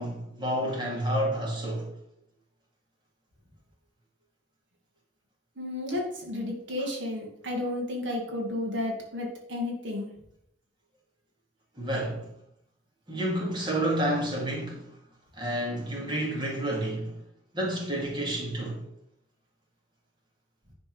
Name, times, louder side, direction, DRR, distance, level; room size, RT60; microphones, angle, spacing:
voice 1, 0.0-1.9 11.8-12.3 13.1-14.9 15.3-17.2 17.5-18.8, right 1 dB, 25° right, 2.4 m, -30 dB
voice 2, 5.6-10.1, left 2 dB, 70° right, 2.2 m, -32 dB
10.5 x 4.3 x 6.1 m
head